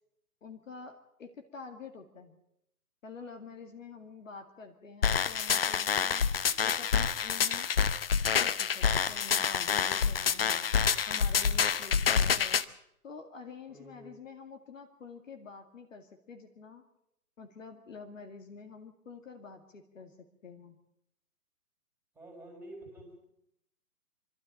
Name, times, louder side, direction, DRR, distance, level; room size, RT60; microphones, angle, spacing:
voice 1, 0.4-2.4 3.0-6.3 6.6-7.7 8.3-10.7 11.1-12.6 13.0-16.8 17.4-20.8, left 4 dB, 55° left, 5 dB, 2.3 m, -48 dB
sound 1, 5.0-12.6, left 7 dB, 40° left, 0.7 m, -27 dB
voice 2, 13.7-14.2 22.1-23.4, right 1 dB, 5° right, 1 dB, 4.0 m, -49 dB
24.5 x 12.5 x 8.6 m, 0.79 s
figure-of-eight pair, 140°, 46 cm